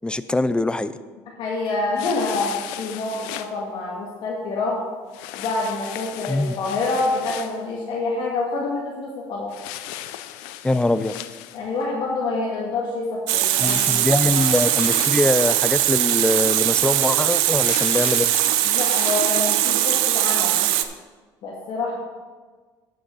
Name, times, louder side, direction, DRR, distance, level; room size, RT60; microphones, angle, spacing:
voice 1, 0.0-0.9 6.3-6.5 10.6-11.1 13.6-18.3, left 2 dB, 10° left, 14 dB, 0.5 m, -22 dB
voice 2, 1.4-4.8 5.3-9.5 11.5-14.5 18.6-20.6 21.4-22.0, left 3 dB, 65° left, -3 dB, 1.9 m, -27 dB
sound 1, 2.0-3.5 5.1-7.6 9.5-11.8 13.5-15.6 17.5-19.5, left 13 dB, 90° left, 0.5 m, -36 dB
Water tap faucet, 13.3-20.8, right 13 dB, 85° right, 0.6 m, -20 dB
9.3 x 6.4 x 5.6 m, 1.4 s
supercardioid pair, 90°, 9 cm